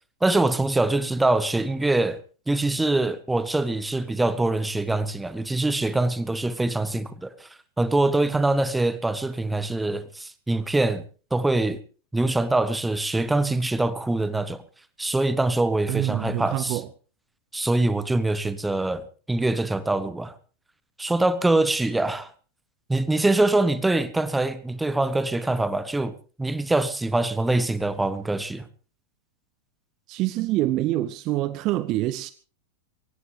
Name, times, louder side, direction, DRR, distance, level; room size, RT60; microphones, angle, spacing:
voice 1, 0.2-2.2 2.5-7.5 7.8-11.0 11.3-11.8 12.1-14.6 15.0-16.8 17.5-20.3 21.0-22.3 22.9-28.7, right 2 dB, 5° right, 1.3 m, -24 dB
voice 2, 15.9-16.9 30.1-32.3, right 15 dB, 40° right, 0.7 m, -26 dB
23.0 x 18.0 x 3.4 m
figure-of-eight pair, 90°, 0 cm